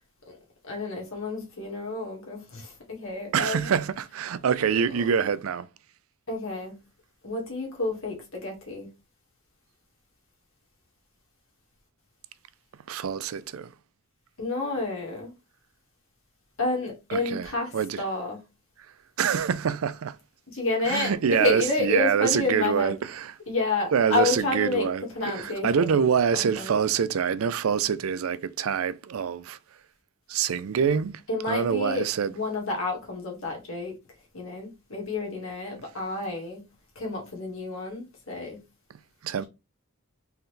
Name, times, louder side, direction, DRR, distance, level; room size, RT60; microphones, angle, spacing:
voice 1, 0.6-3.7 6.3-6.8 7.2-8.9 14.4-15.3 16.6-18.4 20.5-21.1 21.4-23.0 23.5-24.9 25.1-26.0 26.3-26.8 31.3-33.9 34.3-36.6 37.0-38.6, left 3 dB, 70° left, 2.0 m, -30 dB
voice 2, 3.3-5.7 12.9-13.7 17.1-18.0 19.2-20.2 20.9-23.3 23.9-29.6 30.3-31.2 31.5-32.3 39.2-39.4, right 7 dB, 75° right, 0.4 m, -25 dB
4.1 x 3.9 x 3.3 m
head